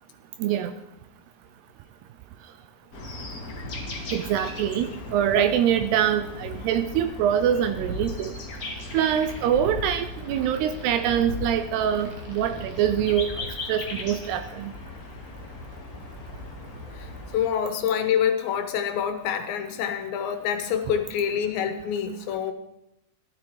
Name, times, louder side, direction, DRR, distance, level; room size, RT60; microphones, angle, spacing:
voice 1, 0.4-0.7 4.1-8.3 8.9-13.3 13.7-14.7, right 9 dB, 80° right, 10 dB, 2.6 m, -24 dB
sound 1, 2.9-17.5, left 2 dB, 45° left, 1.1 m, -38 dB
sound 2, 7.5-12.9, equal, 50° right, 2.3 m, -39 dB
voice 2, 16.9-22.5, left 8 dB, 85° left, 7 dB, 3.5 m, -26 dB
14.5 x 12.5 x 4.7 m, 0.83 s
omnidirectional pair, 5.0 m